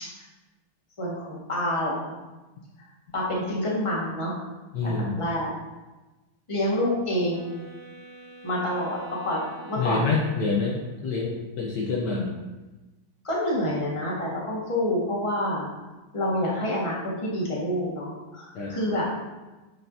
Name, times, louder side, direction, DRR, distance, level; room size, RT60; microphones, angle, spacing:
voice 1, 1.0-2.1 3.1-4.4 4.8-5.5 6.5-7.5 8.4-9.0 9.2-10.0 13.2-15.7 16.1-19.1, left 1 dB, 15° left, -6 dB, 1.5 m, -27 dB
voice 2, 4.7-5.3 9.8-12.4 18.5-18.8, left 4 dB, 65° left, -2 dB, 1.4 m, -27 dB
sound 1, 7.3-11.2, right 3 dB, 40° right, 2.0 m, -47 dB
8.9 x 5.9 x 2.7 m, 1.1 s
omnidirectional pair, 2.2 m